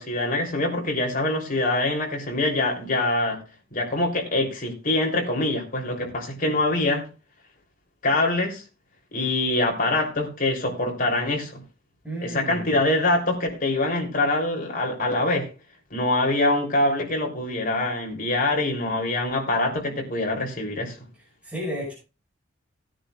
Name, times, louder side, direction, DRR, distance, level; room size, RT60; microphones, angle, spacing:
voice 1, 0.0-3.4 3.7-7.1 8.0-8.6 9.1-11.6 12.2-15.5 15.9-20.9, left 2 dB, 45° left, 3.4 m, -24 dB
voice 2, 12.0-12.7 21.4-21.9, equal, 5° right, 5.9 m, -32 dB
18.5 x 9.9 x 2.5 m
head